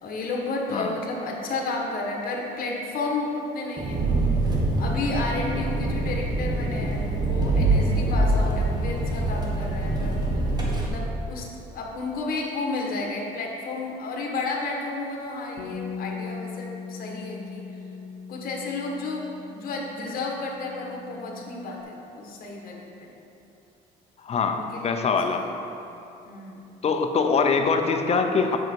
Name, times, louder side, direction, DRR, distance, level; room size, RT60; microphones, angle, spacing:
voice 1, 0.0-4.0 4.8-10.2 10.7-17.6 18.3-19.2 19.5-23.1 24.5-25.5 26.2-26.6, left 3 dB, 60° left, 0 dB, 1.5 m, -32 dB
Engine, 3.8-10.9, right 2 dB, 25° right, 1.5 m, -24 dB
Bass guitar, 15.6-21.8, left 5 dB, 85° left, 0.9 m, -39 dB
voice 2, 24.2-25.4 26.8-28.6, left 5 dB, 40° left, 5 dB, 0.7 m, -23 dB
7.9 x 6.4 x 4.6 m, 2.9 s
cardioid pair, 110°, 17 cm